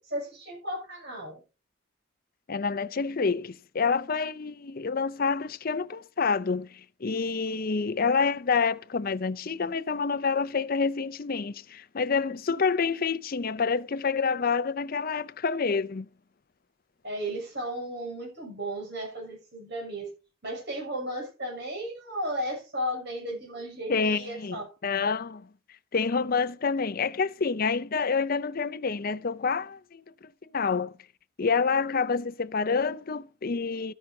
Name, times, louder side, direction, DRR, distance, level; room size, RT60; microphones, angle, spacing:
voice 1, 0.0-1.4 17.0-20.1 20.4-24.7, equal, 50° right, 6.7 m, -34 dB
voice 2, 2.5-16.1 23.9-25.5 25.9-30.9 31.4-33.9, left 5 dB, 45° left, 0.5 m, -28 dB
13.5 x 9.9 x 2.8 m
head